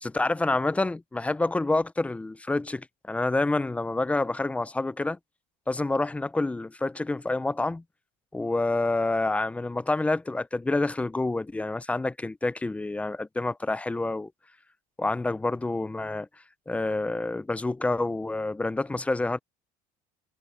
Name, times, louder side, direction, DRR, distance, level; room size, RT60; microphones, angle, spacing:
voice 1, 0.0-5.2 5.7-7.8 8.3-14.3 15.0-16.3 16.7-19.4, left 2 dB, 5° left, 0.5 m, -28 dB
cardioid pair, 140°, 17 cm